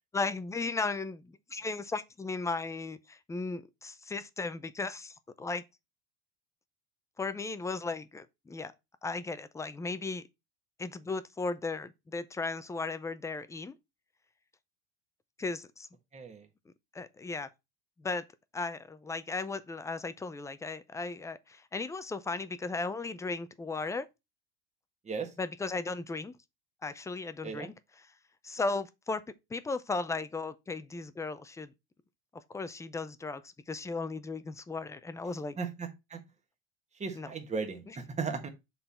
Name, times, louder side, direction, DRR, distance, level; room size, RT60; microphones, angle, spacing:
voice 1, 0.1-5.6 7.2-8.7 9.0-10.2 10.8-13.8 15.4-15.9 16.9-17.5 18.0-18.2 18.5-24.1 25.4-26.3 26.8-28.1 28.4-29.2 29.5-31.7 32.5-35.6 37.1-37.3 37.9-38.0, left 3 dB, 10° left, 0.4 m, -36 dB
voice 2, 16.1-16.4 25.1-25.3 27.4-27.7 35.6-36.2 37.0-38.5, right 5 dB, 20° right, 1.4 m, -36 dB
6.7 x 3.9 x 4.2 m
supercardioid pair, 120°, 34 cm